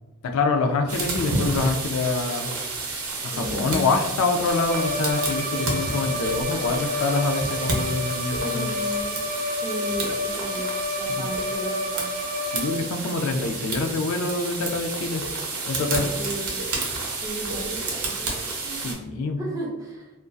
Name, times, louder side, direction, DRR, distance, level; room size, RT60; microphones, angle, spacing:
voice 1, 0.2-2.5 3.2-8.7 11.2-11.3 12.4-15.2 15.7-16.1 18.8-19.4, left 3 dB, 70° left, 4 dB, 0.3 m, -25 dB
sound 1, 0.9-18.9, right 3 dB, 80° right, 0.6 m, -30 dB
voice 2, 3.3-3.9 8.4-9.3 9.6-10.7 11.0-12.1 16.1-16.6 17.2-18.9 19.2-20.1, right 1 dB, 15° right, -2 dB, 0.4 m, -35 dB
Bowed string instrument, 4.7-12.9, left 2 dB, 50° left, 0.8 m, -30 dB
2.5 x 2.2 x 2.2 m, 1.1 s
head